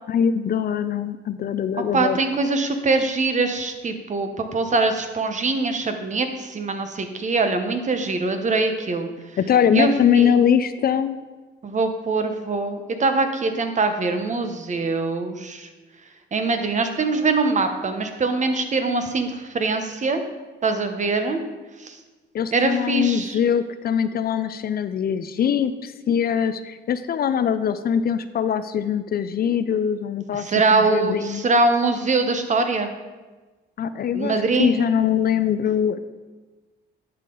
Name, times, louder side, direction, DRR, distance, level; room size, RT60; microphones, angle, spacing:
voice 1, 0.1-2.2 9.4-11.2 22.3-31.5 33.8-34.3 34.6-36.0, left 8 dB, 50° left, 12 dB, 0.5 m, -22 dB
voice 2, 1.9-9.1 9.7-10.4 11.6-15.7 16.3-20.2 20.6-21.4 21.8-22.0 22.5-23.4 30.3-32.9 34.1-34.8, right 3 dB, 35° right, 7 dB, 1.0 m, -23 dB
10.5 x 5.7 x 3.9 m, 1.3 s
cardioid pair, 90°, 20 cm